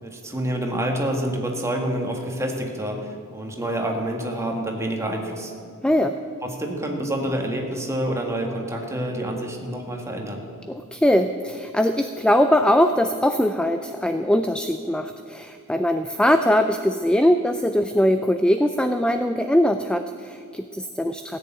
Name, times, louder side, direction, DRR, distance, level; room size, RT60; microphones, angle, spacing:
voice 1, 0.0-5.5 6.4-10.4, right 1 dB, 15° right, 1 dB, 1.8 m, -27 dB
voice 2, 5.8-6.2 10.7-21.4, left 1 dB, 5° left, 8 dB, 0.4 m, -21 dB
16.5 x 6.9 x 8.9 m, 2.3 s
head